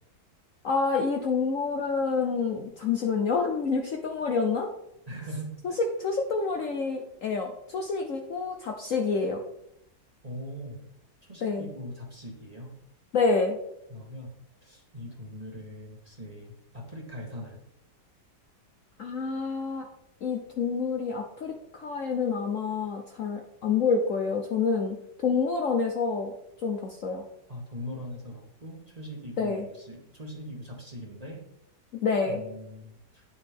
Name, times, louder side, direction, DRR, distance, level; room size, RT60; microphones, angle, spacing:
voice 1, 0.6-4.7 5.6-9.4 11.4-11.7 13.1-13.6 19.0-19.9 20.2-26.3 26.6-27.2 29.4-29.7 32.0-32.4, left 4 dB, 55° left, 3 dB, 1.0 m, -28 dB
voice 2, 5.1-5.8 10.2-10.8 11.3-12.7 13.9-14.3 14.6-17.6 27.5-31.4 32.2-33.2, equal, 25° right, 0 dB, 1.5 m, -41 dB
9.4 x 6.8 x 3.6 m, 0.79 s
omnidirectional pair, 1.9 m